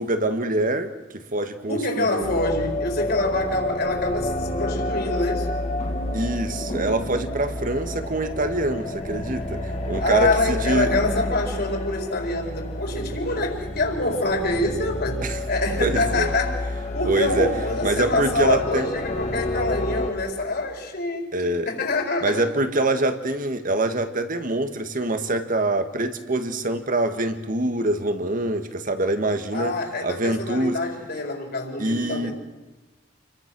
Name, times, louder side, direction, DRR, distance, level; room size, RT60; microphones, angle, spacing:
voice 1, 0.0-2.4 6.1-10.9 15.2-15.4 15.8-16.3 17.1-17.5 17.8-18.9 21.3-21.7 22.2-29.7 30.0-30.8 31.8-32.3, right 2 dB, 45° right, 8 dB, 1.8 m, -25 dB
voice 2, 1.7-5.5 10.0-16.6 16.9-22.5 29.5-32.3, left 2 dB, 55° left, 2 dB, 4.6 m, -26 dB
sound 1, 2.2-20.1, left 1 dB, 40° left, 2.3 m, -29 dB
29.0 x 22.5 x 6.3 m, 1.1 s
head